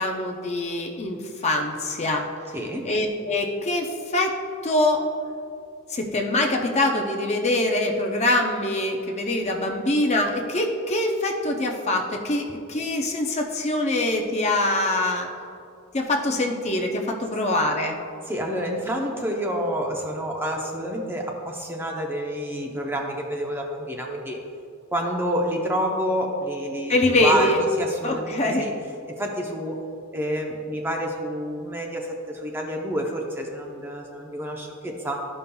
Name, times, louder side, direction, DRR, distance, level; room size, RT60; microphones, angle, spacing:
voice 1, 0.0-2.3 2.8-4.4 4.6-5.1 5.9-15.3 15.9-18.0 26.9-27.6 28.0-28.7, left 2 dB, 30° left, 2 dB, 0.5 m, -24 dB
voice 2, 2.5-2.9 18.3-24.4 24.9-28.7 29.1-29.8 30.1-35.2, equal, 10° right, 0 dB, 0.6 m, -28 dB
13.0 x 5.4 x 2.3 m, 2.4 s
head